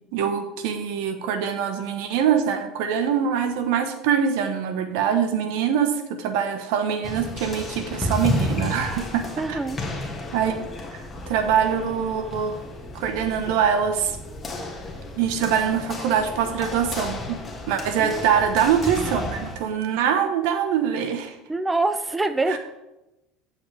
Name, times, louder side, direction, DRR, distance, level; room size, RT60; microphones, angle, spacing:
voice 1, 0.1-9.6 10.3-10.6 10.9-11.0 11.3-12.6 12.9-14.2 15.2-17.4 17.7-21.4 22.5-22.6, right 8 dB, 75° right, 7 dB, 1.0 m, -24 dB
sound 1, 7.0-19.6, left 2 dB, 20° left, 1.9 m, -32 dB
voice 2, 9.4-9.8 18.0-18.2 21.5-22.6, right 2 dB, 15° right, 11 dB, 0.5 m, -25 dB
9.5 x 7.1 x 3.3 m, 0.96 s
supercardioid pair, 105°, 0 cm